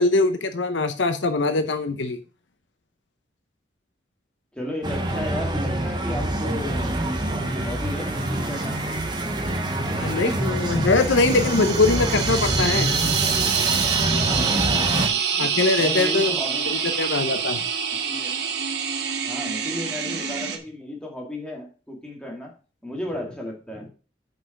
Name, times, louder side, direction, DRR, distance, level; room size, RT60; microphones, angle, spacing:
voice 1, 0.0-2.2 9.8-12.9 15.4-16.3 17.0-17.6, left 3 dB, 75° left, 9 dB, 0.8 m, -22 dB
voice 2, 4.5-9.0 14.6-16.9 18.0-18.4 19.3-22.5 22.8-23.9, left 1 dB, 5° left, -1 dB, 2.2 m, -34 dB
sound 1, 4.8-15.1, right 1 dB, 25° right, 1.0 m, -26 dB
sound 2, 10.8-20.6, right 7 dB, 60° right, 1.1 m, -26 dB
6.1 x 5.5 x 5.9 m, 0.34 s
head